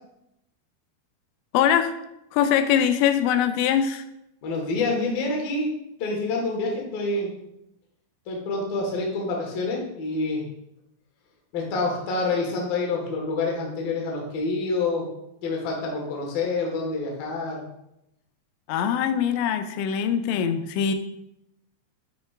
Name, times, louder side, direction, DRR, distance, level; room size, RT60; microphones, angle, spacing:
voice 1, 1.5-1.9 2.3-4.0 18.7-20.9, left 9 dB, 90° left, 8 dB, 2.9 m, -22 dB
voice 2, 4.4-5.7 6.0-7.3 8.3-10.4 11.5-15.0 15.4-17.6, left 3 dB, 60° left, -1 dB, 3.0 m, -27 dB
12.0 x 5.2 x 2.5 m, 0.83 s
omnidirectional pair, 5.1 m